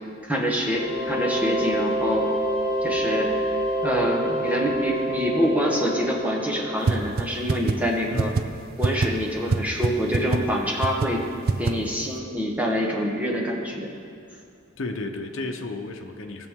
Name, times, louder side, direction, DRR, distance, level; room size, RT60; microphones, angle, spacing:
voice 1, 0.2-2.3 2.8-3.3 3.8-8.3 8.8-11.2 11.6-13.9, equal, 5° right, -1 dB, 1.1 m, -26 dB
sound 1, 0.7-7.3, right 1 dB, 10° left, 2.1 m, -27 dB
sound 2, 6.9-7.0 7.2-7.3 7.5-7.7 8.2-8.4 8.8-9.1 9.5-9.6 9.8-9.9 10.1-10.4 10.8-11.1 11.5-11.7, right 4 dB, 45° right, 0.4 m, -21 dB
voice 2, 14.8-16.5, left 2 dB, 75° left, 3 dB, 0.8 m, -32 dB
16.5 x 7.0 x 3.7 m, 2.4 s
head